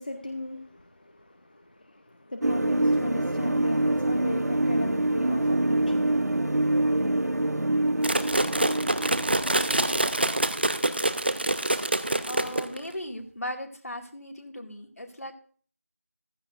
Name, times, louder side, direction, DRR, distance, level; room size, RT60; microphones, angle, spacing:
voice 1, 0.0-7.3, left 1 dB, 35° left, 0.8 m, -38 dB
sound 1, 2.4-10.8, right 1 dB, 85° right, 0.7 m, -26 dB
sound 2, 8.0-12.9, right 1 dB, 40° right, 0.6 m, -26 dB
voice 2, 12.3-15.3, left 1 dB, 70° left, 2.3 m, -37 dB
15.0 x 14.0 x 2.6 m
figure-of-eight pair, 175°, 8 cm